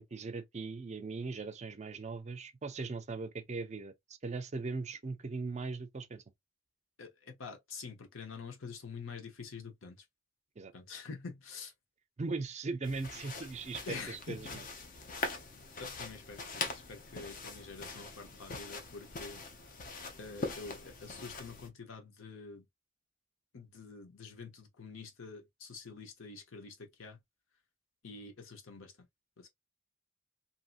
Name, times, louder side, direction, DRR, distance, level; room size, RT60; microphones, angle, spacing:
voice 1, 0.0-3.9 4.2-6.2 10.6-10.7 12.2-14.7, right 3 dB, 35° right, 0.4 m, -39 dB
voice 2, 7.0-10.0 10.7-11.7 13.9-14.6 15.8-19.4 20.2-22.7 23.5-27.2 28.0-28.9 29.4-29.5, left 4 dB, 75° left, 0.8 m, -47 dB
sound 1, 12.8-21.7, left 3 dB, 45° left, 0.6 m, -42 dB
2.7 x 2.7 x 2.4 m
head